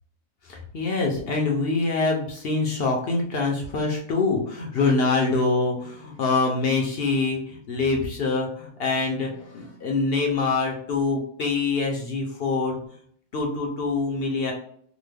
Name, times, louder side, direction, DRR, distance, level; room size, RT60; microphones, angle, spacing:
voice 1, 0.5-12.8 13.3-14.5, left 3 dB, 60° left, 1 dB, 0.6 m, -25 dB
2.9 x 2.1 x 3.3 m, 0.62 s
omnidirectional pair, 1.5 m